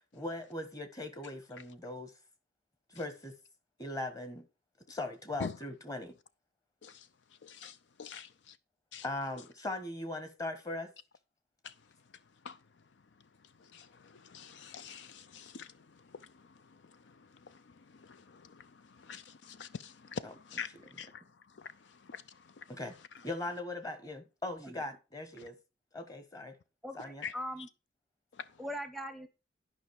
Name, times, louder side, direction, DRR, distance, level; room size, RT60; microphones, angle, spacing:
voice 1, 0.0-2.1 2.9-3.3 3.8-4.4 4.9-6.1 8.1-8.2 9.0-10.9 20.2-20.3 22.7-23.0 23.2-25.6 25.9-26.6 26.9-27.2, left 2 dB, 20° left, 1.4 m, -39 dB
voice 2, 7.4-8.6 8.9-9.0 11.6-11.7 12.4-12.6 13.6-15.7 16.1-16.3 17.1-17.2 17.4-21.2 21.5-22.6 27.2-27.3, left 6 dB, 70° left, 0.5 m, -45 dB
voice 3, 24.5-24.9 26.8-27.7 28.6-29.3, equal, ahead, 0.8 m, -41 dB
11.5 x 5.5 x 4.7 m
head